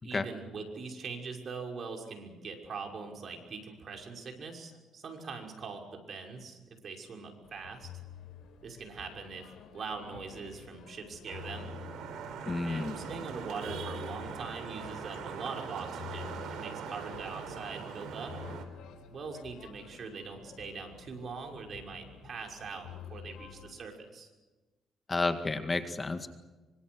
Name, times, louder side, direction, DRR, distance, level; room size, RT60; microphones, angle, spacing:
voice 1, 0.0-8.0 8.6-11.7 12.6-18.4 19.1-24.3, right 4 dB, 50° right, 2 dB, 5.9 m, -42 dB
sound 1, 7.4-23.7, left 8 dB, 85° left, 4.3 m, -49 dB
Vehicle horn car horn honking / Traffic noise roadway noise, 11.3-18.7, right 6 dB, 80° right, 4.0 m, -41 dB
voice 2, 12.5-12.9 25.1-26.3, left 3 dB, 25° left, 7 dB, 2.0 m, -31 dB
26.5 x 25.0 x 6.4 m, 1.2 s
cardioid pair, 90°, 0 cm